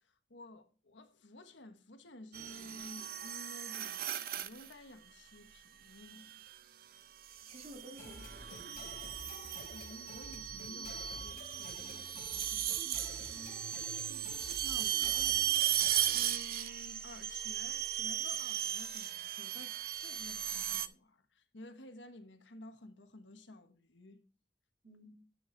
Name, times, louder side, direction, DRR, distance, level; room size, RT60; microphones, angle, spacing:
voice 1, 0.0-6.4 9.7-12.7 14.1-15.7 16.1-24.2, left 1 dB, 90° left, 1.3 m, -53 dB
sound 1, 2.3-4.7 6.1-6.5 7.3-20.9, right 11 dB, 50° right, 0.6 m, -36 dB
voice 2, 7.5-9.0 13.3-13.5 24.8-25.2, equal, 35° right, 2.0 m, -53 dB
sound 2, 8.0-16.3, left 2 dB, 55° left, 1.3 m, -50 dB
10.0 x 7.1 x 4.4 m
head